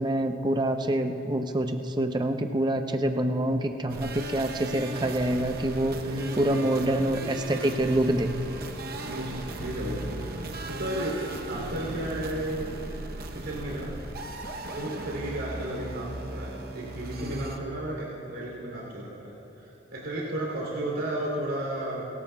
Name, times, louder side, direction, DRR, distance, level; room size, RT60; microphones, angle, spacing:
voice 1, 0.0-6.0 6.4-8.3, right 1 dB, 20° right, 6 dB, 0.5 m, -26 dB
sound 1, 3.9-17.6, right 2 dB, 50° right, 0.8 m, -37 dB
voice 2, 6.0-6.7 9.0-12.7 13.3-13.9 14.7-22.1, right 1 dB, 90° right, -4 dB, 2.9 m, -33 dB
29.5 x 13.0 x 2.3 m, 2.9 s
head